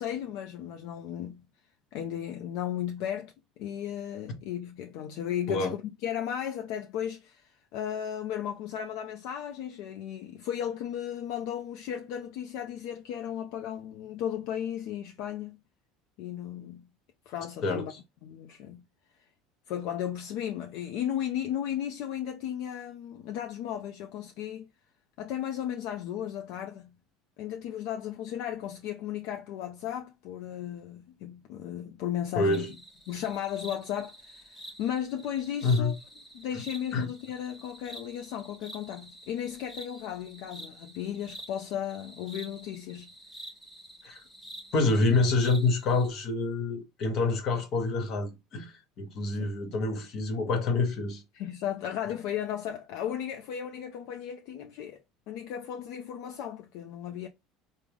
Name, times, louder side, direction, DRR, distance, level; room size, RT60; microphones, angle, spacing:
voice 1, 0.0-1.5 1.9-15.6 16.2-16.9 17.3-17.9 18.2-18.8 19.7-24.7 25.2-26.9 27.4-32.7 33.1-35.9 36.3-43.1 49.4-49.5 51.3-55.0 55.3-57.3, left 10 dB, 70° left, 0.4 m, -35 dB
voice 2, 17.6-18.0 32.3-32.7 35.6-35.9 36.9-37.1 44.0-44.2 44.7-51.2, left 3 dB, 50° left, 1.0 m, -27 dB
sound 1, 32.5-46.1, right 1 dB, 5° left, 0.9 m, -48 dB
3.4 x 2.0 x 3.4 m
supercardioid pair, 120°, 0 cm